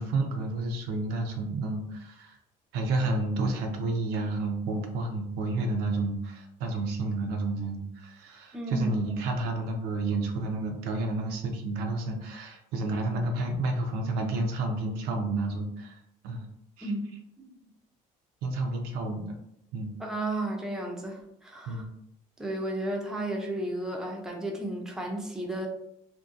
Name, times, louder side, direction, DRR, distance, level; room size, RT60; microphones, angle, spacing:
voice 1, 0.0-2.4 2.7-15.9 16.2-16.4 16.8-16.9 18.4-19.4 19.7-19.9 21.7-21.8, right 2 dB, 90° right, 3 dB, 0.5 m, -30 dB
voice 2, 8.5-9.0 16.8-17.0 17.4-17.5 20.0-21.8 22.4-25.7, right 1 dB, 5° right, 0 dB, 0.4 m, -33 dB
2.7 x 2.1 x 2.4 m, 0.77 s
cardioid pair, 140°, 16 cm